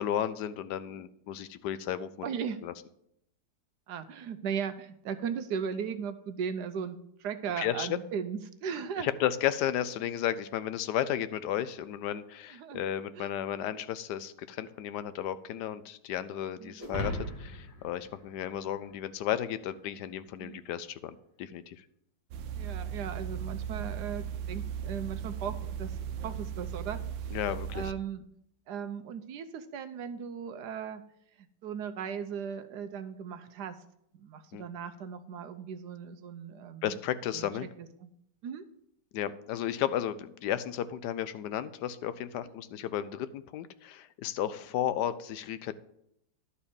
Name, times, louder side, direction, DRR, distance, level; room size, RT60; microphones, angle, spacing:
voice 1, 0.0-2.3 2.6-2.7 7.6-8.0 9.0-21.8 27.3-27.9 34.5-34.6 36.8-37.7 39.1-45.7, left 11 dB, 75° left, 13 dB, 1.1 m, -33 dB
voice 2, 2.2-2.6 3.9-9.1 12.5-12.8 13.2-13.3 16.6-16.8 20.4-20.6 22.6-27.0 27.7-28.2 28.7-31.0 31.4-33.8 34.1-37.0 37.3-37.5 38.0-38.1 38.4-38.6 42.4-42.5, right 7 dB, 70° right, 10 dB, 1.2 m, -37 dB
sound 1, 16.8-19.3, equal, 10° right, 2.1 m, -38 dB
sound 2, 22.3-27.9, right 8 dB, 90° right, 1.4 m, -37 dB
11.5 x 4.2 x 7.0 m, 0.75 s
omnidirectional pair, 2.0 m